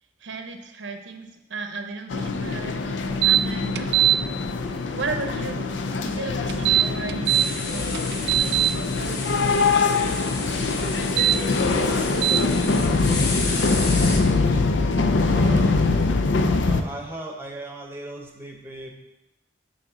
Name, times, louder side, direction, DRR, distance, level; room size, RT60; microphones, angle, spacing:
voice 1, 0.2-4.0 4.9-5.7 6.0-10.1, right 3 dB, 85° right, 6 dB, 0.8 m, -35 dB
sound 1, 2.1-16.8, left 3 dB, 80° left, 0.5 m, -23 dB
sound 2, 3.2-3.4 3.8-4.2 6.5-7.5 7.9-8.7 11.0-11.4 12.2-12.4, right 12 dB, 65° right, 0.3 m, -19 dB
sound 3, 7.2-14.2, left 3 dB, 65° left, 1.0 m, -32 dB
voice 2, 11.6-14.6 15.2-16.0 16.6-18.9, right 1 dB, 10° right, 2 dB, 0.8 m, -38 dB
6.4 x 4.1 x 6.0 m, 0.95 s
head